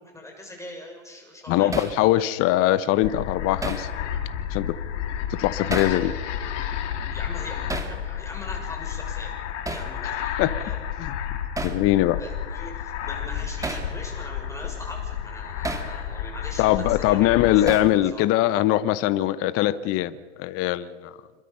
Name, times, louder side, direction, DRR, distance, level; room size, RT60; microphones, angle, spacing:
voice 1, 0.0-2.0 7.1-9.3 9.7-10.3 10.6-10.8 12.2-17.3 17.5-18.2, left 1 dB, 10° left, 6.6 m, -41 dB
voice 2, 1.5-3.9 4.5-4.8 5.4-6.1 10.4-10.5 11.0-11.2 11.6-12.2 16.6-20.1 20.4-21.1, left 14 dB, 35° left, 1.0 m, -21 dB
Hammer, 1.7-2.0 3.6-3.9 5.7-6.0 7.7-8.0 9.7-9.9 11.6-11.8 13.6-13.9 15.6-15.9 17.7-18.0, right 3 dB, 10° right, 2.3 m, -31 dB
sound 1, 3.0-17.8, left 9 dB, 65° left, 3.2 m, -31 dB
27.0 x 22.0 x 5.7 m
hypercardioid pair, 125°, 38 cm